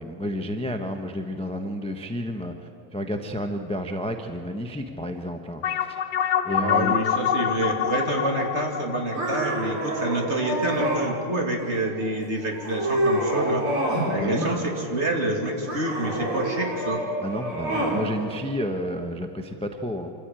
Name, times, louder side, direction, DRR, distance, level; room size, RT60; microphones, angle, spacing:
voice 1, 0.0-2.5 2.9-6.0 6.4-7.0 14.1-14.5 17.2-20.1, equal, 5° left, 5 dB, 0.5 m, -30 dB
sound 1, 5.6-10.5, left 9 dB, 60° left, 1.5 m, -26 dB
voice 2, 6.6-13.6 14.1-17.0, right 1 dB, 30° right, 1 dB, 2.8 m, -27 dB
sound 2, 9.1-11.0 11.6-12.1 12.5-14.1 14.4-15.1 15.7-18.0, right 1 dB, 85° right, 5.0 m, -27 dB
26.5 x 14.5 x 9.0 m, 2.6 s
omnidirectional pair, 2.3 m